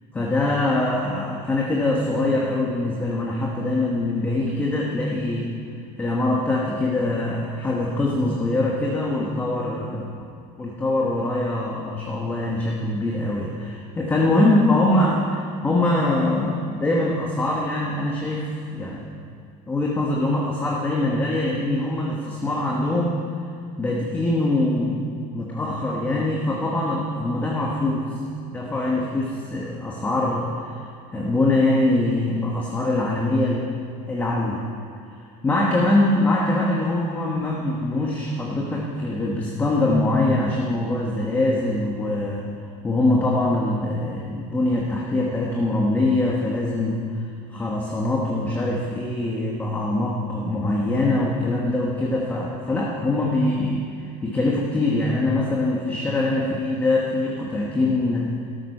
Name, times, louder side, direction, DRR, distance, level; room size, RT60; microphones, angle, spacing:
voice 1, 0.1-5.5 6.0-10.3 10.6-19.1 19.7-23.2 23.8-25.0 25.3-28.2 28.5-30.9 31.1-33.6 34.1-34.6 35.4-42.5 42.8-47.0 47.5-53.8 54.2-58.3, left 2 dB, 10° left, -2 dB, 1.1 m, -23 dB
13.5 x 12.5 x 5.4 m, 2.3 s
cardioid pair, 175°, 16 cm